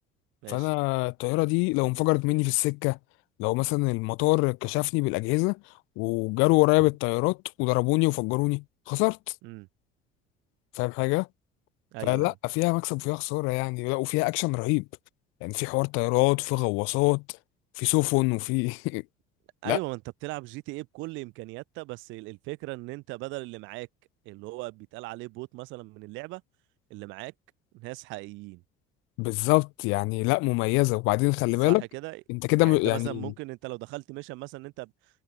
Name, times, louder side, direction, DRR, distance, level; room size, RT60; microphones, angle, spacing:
voice 1, 0.5-3.0 3.4-5.6 6.0-9.2 10.8-11.3 12.1-14.8 15.4-17.2 17.8-19.0 19.7-19.8 29.2-31.8 32.3-33.3, left 27 dB, 75° left, 0.9 m, -25 dB
voice 2, 11.9-12.4 19.6-23.9 24.2-26.4 26.9-27.3 27.7-28.6 31.6-32.2 32.6-34.9, right 23 dB, 65° right, 2.6 m, -38 dB
cardioid pair, 175°, 21 cm